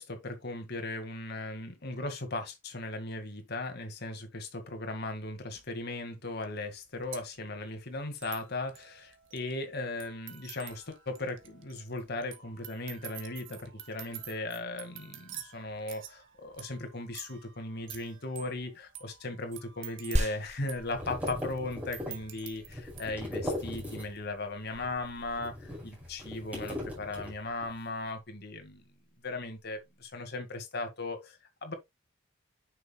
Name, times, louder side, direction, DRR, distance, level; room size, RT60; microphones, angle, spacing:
voice 1, 0.0-28.8 29.2-31.7, left 2 dB, 55° left, 2.1 m, -37 dB
sound 1, 5.6-5.7 6.4-6.5 6.7-23.1, right 11 dB, 85° right, 1.7 m, -49 dB
sound 2, 20.5-24.4 24.7-27.8, left 1 dB, 10° right, 5.4 m, -39 dB
sound 3, 24.1-30.1, right 1 dB, 35° right, 1.2 m, -40 dB
9.6 x 6.6 x 2.3 m
head